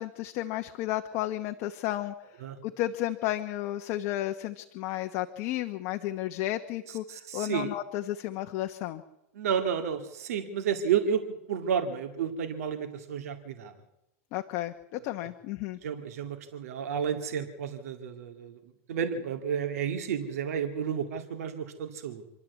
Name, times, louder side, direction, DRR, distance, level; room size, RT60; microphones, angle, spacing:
voice 1, 0.0-2.1 2.6-9.0 14.3-15.8, left 14 dB, 40° left, 6 dB, 1.0 m, -33 dB
voice 2, 6.9-7.7 9.3-13.7 15.8-18.6 18.9-22.2, right 7 dB, 80° right, 7 dB, 2.3 m, -31 dB
27.0 x 12.0 x 8.3 m, 0.93 s
supercardioid pair, 160°, 8 cm